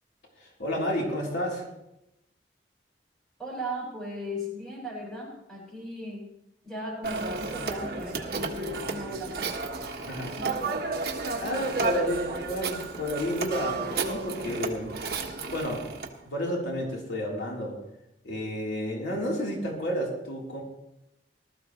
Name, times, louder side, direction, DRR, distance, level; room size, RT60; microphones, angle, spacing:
voice 1, 0.4-1.7 10.0-10.3 11.4-14.9 15.5-15.9 16.2-17.7 18.2-20.6, equal, 90° left, -3 dB, 4.0 m, -31 dB
voice 2, 3.4-6.3 6.6-9.6 10.3-10.9, equal, 5° left, -5 dB, 6.3 m, -37 dB
Telephone, 7.0-16.1, right 4 dB, 60° right, 1.5 m, -32 dB
19.5 x 13.5 x 3.2 m, 0.87 s
head